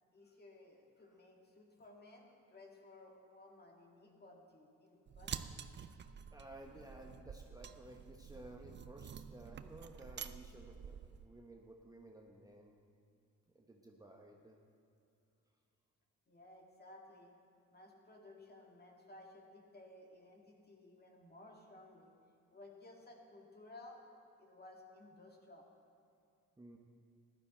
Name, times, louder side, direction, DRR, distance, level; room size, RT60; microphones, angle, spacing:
voice 1, 0.1-5.7 16.3-17.3 17.7-22.1 22.5-24.0 24.4-25.7, left 2 dB, 30° left, 0 dB, 2.2 m, -57 dB
sound 1, 5.1-11.3, right 7 dB, 35° right, 0.5 m, -49 dB
voice 2, 6.3-12.8 13.5-14.6 26.6-26.8, right 1 dB, 10° right, 1 dB, 1.0 m, -55 dB
15.0 x 11.5 x 4.4 m, 2.6 s
cardioid pair, 90°, 30 cm